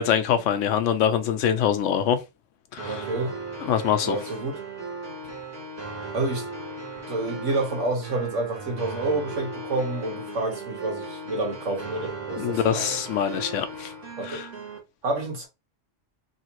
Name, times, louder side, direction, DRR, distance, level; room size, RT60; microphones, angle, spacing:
voice 1, 0.0-2.2 2.7-3.0 3.7-4.2 12.4-13.9 14.2-14.5, left 9 dB, 90° left, 0.9 m, -24 dB
sound 1, 2.8-14.8, right 3 dB, 50° right, 1.6 m, -37 dB
voice 2, 2.8-3.3 4.0-4.6 6.1-6.5 7.1-12.9 14.2-14.4 15.0-15.5, right 2 dB, 85° right, 1.7 m, -29 dB
3.2 x 2.8 x 2.9 m
omnidirectional pair, 1.3 m